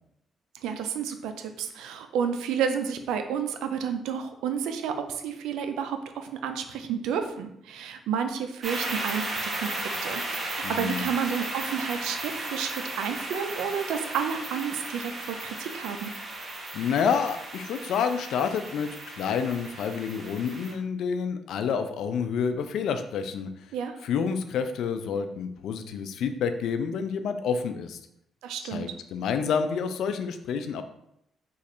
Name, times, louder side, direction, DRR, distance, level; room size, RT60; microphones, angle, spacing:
voice 1, 0.6-16.1 23.7-24.0 28.4-28.9, right 7 dB, 90° right, 7 dB, 0.4 m, -31 dB
sound 1, 8.6-20.7, right 2 dB, 40° right, 0.9 m, -35 dB
voice 2, 10.6-11.0 16.7-23.5 24.0-28.0 28.6-30.8, left 6 dB, 75° left, 8 dB, 0.3 m, -29 dB
3.1 x 2.4 x 4.3 m, 0.77 s
cardioid pair, 90°, 0 cm